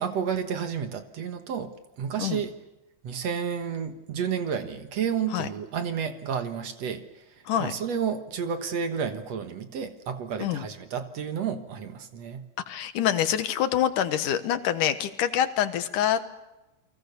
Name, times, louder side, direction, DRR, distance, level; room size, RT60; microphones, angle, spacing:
voice 1, 0.0-2.5 3.0-12.4, right 7 dB, 60° right, 8 dB, 2.3 m, -31 dB
voice 2, 12.7-16.3, left 10 dB, 75° left, 11 dB, 2.8 m, -26 dB
29.5 x 23.0 x 6.9 m, 1.0 s
omnidirectional pair, 3.8 m